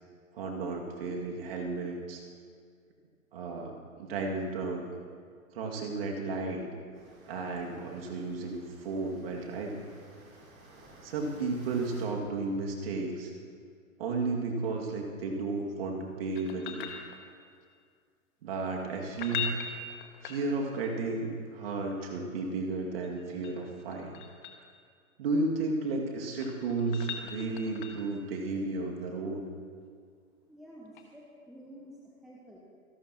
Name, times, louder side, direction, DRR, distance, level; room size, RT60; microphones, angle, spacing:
voice 1, 0.3-2.2 3.3-4.9 5.5-6.6 7.3-9.8 11.0-13.3 14.0-16.8 18.4-19.5 20.2-24.1 25.2-29.4, right 3 dB, 40° right, 0 dB, 2.4 m, -33 dB
sound 1, 6.9-12.1, right 2 dB, 25° right, 3.4 m, -55 dB
sound 2, 16.4-17.6 19.1-20.9 23.0-24.7 26.1-28.2 30.9-31.0, left 7 dB, 35° left, 1.5 m, -40 dB
voice 2, 30.5-32.6, equal, ahead, -4 dB, 0.6 m, -50 dB
26.5 x 12.0 x 3.0 m, 2.1 s
figure-of-eight pair, 120°, 43 cm